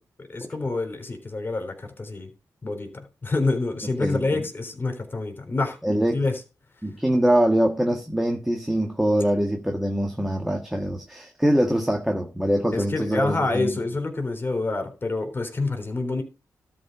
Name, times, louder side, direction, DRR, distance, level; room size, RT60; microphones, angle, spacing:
voice 1, 0.3-2.3 2.6-5.8 6.1-6.3 12.7-16.2, left 3 dB, 30° left, 3.8 m, -27 dB
voice 2, 4.0-4.4 5.8-6.2 6.8-13.8, right 1 dB, 5° right, 1.6 m, -23 dB
12.5 x 4.4 x 6.7 m
cardioid pair, 90°, 7 cm